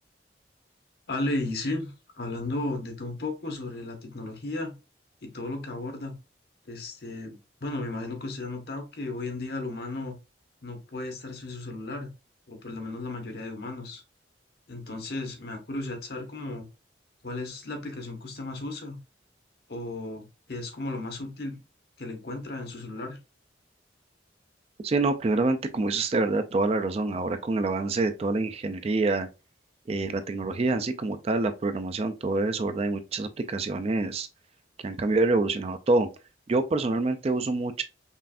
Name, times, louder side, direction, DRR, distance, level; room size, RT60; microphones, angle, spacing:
voice 1, 1.1-4.7 5.2-6.1 6.7-10.2 10.6-12.1 12.5-14.0 14.7-16.7 17.2-19.0 19.7-21.6 22.0-23.2, left 2 dB, 60° left, 1.1 m, -34 dB
voice 2, 24.8-29.3 29.9-34.3 34.8-36.1 36.5-37.8, right 3 dB, 35° right, 0.4 m, -26 dB
5.4 x 2.5 x 2.4 m
head